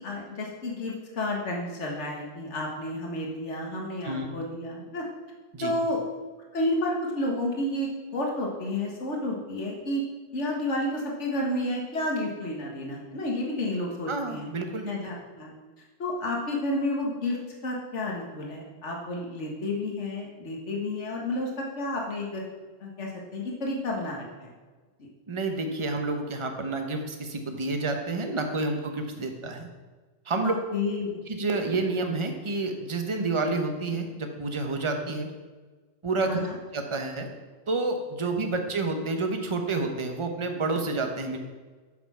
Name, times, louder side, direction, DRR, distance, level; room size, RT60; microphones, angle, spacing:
voice 1, 0.0-5.0 5.6-6.0 6.5-10.0 10.3-14.5 14.9-15.5 16.0-17.4 17.6-22.4 22.8-24.5 25.0-25.1 30.4-31.3 36.2-36.6, left 1 dB, 75° left, -1 dB, 1.9 m, -31 dB
voice 2, 14.1-14.9 25.3-29.7 30.3-30.5 31.3-35.3 36.0-36.5 36.7-37.3 37.7-41.4, right 3 dB, 25° right, 4 dB, 1.0 m, -29 dB
8.4 x 7.0 x 5.6 m, 1.3 s
omnidirectional pair, 1.2 m